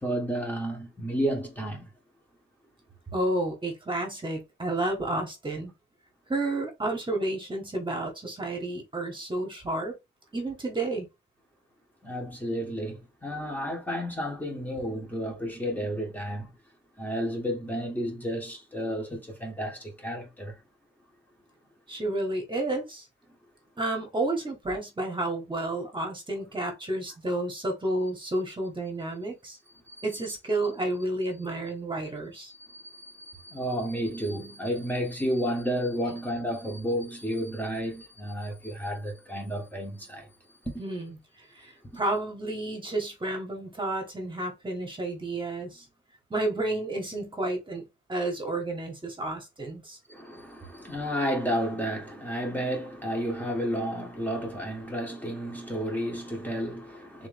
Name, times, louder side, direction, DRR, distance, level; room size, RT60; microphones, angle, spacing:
voice 1, 0.0-1.9 12.0-16.5 17.0-20.6 29.9-30.2 32.5-40.3 40.6-40.7 41.9-42.0 50.1-57.3, equal, 10° left, 1.3 m, -32 dB
voice 2, 3.1-5.7 6.3-9.9 10.3-11.1 21.9-23.0 23.8-29.6 30.0-32.5 40.8-41.2 41.5-45.8 46.3-47.8 48.1-50.0, right 2 dB, 25° right, 1.4 m, -31 dB
3.7 x 3.2 x 3.4 m
wide cardioid pair, 135°, 20 cm